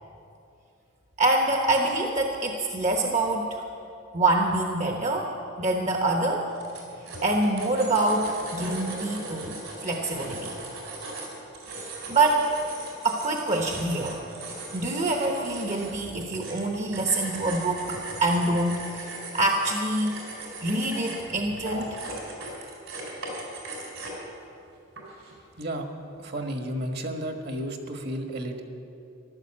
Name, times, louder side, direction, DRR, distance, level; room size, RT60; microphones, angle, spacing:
voice 1, 1.2-3.6 4.1-5.3 5.6-6.5 7.2-10.5 11.7-12.5 13.0-14.2 14.7-20.2 20.6-22.0, right 2 dB, 35° right, 2 dB, 1.0 m, -26 dB
sound 1, 6.4-24.3 25.0-25.3, right 2 dB, 85° right, 4.1 m, -39 dB
voice 2, 25.6-25.9 26.2-28.6, right 1 dB, 50° right, 5 dB, 1.4 m, -32 dB
15.0 x 12.0 x 7.6 m, 2.7 s
head